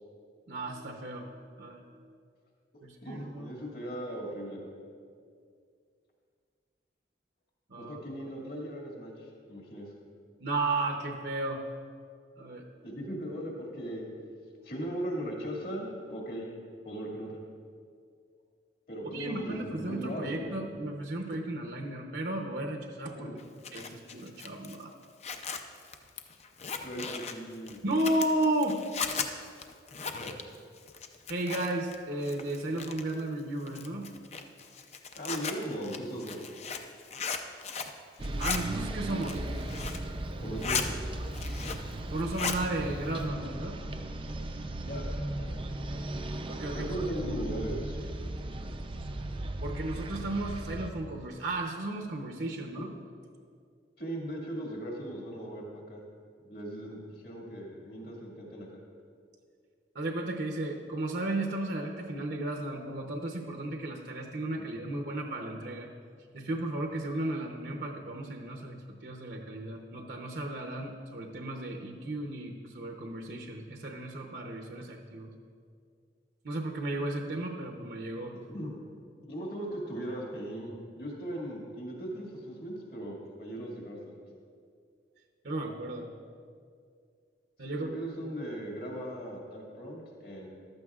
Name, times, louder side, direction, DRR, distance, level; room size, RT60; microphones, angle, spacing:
voice 1, 0.5-2.1 2.8-3.5 7.7-8.0 10.4-11.6 12.4-12.7 19.1-23.3 23.7-24.9 27.8-28.8 31.3-34.1 38.4-39.4 42.1-43.8 46.5-47.0 49.6-52.9 59.9-65.9 66.3-75.3 76.4-78.3 85.4-86.1 87.6-87.9, right 2 dB, 60° right, 2 dB, 0.8 m, -34 dB
voice 2, 3.0-4.7 7.8-9.9 12.8-14.0 14.6-16.5 16.8-17.4 18.9-20.6 23.2-23.3 26.8-27.8 30.2-30.3 35.1-36.4 40.4-41.0 44.8-45.1 46.7-48.0 52.8-52.9 54.0-56.0 56.4-58.7 64.6-64.7 78.5-78.7 79.3-84.2 87.6-90.5, right 1 dB, 55° left, -2 dB, 2.1 m, -38 dB
Zipper (clothing), 23.4-32.0 32.2-33.2 33.7-38.0 38.2-38.6 39.1-40.1 40.4-40.9 41.2-41.9 42.2-42.6, left 5 dB, 35° left, 0.5 m, -37 dB
sound 1, 38.2-50.9, right 1 dB, 30° right, 0.5 m, -36 dB
14.5 x 12.0 x 2.4 m, 2.2 s
head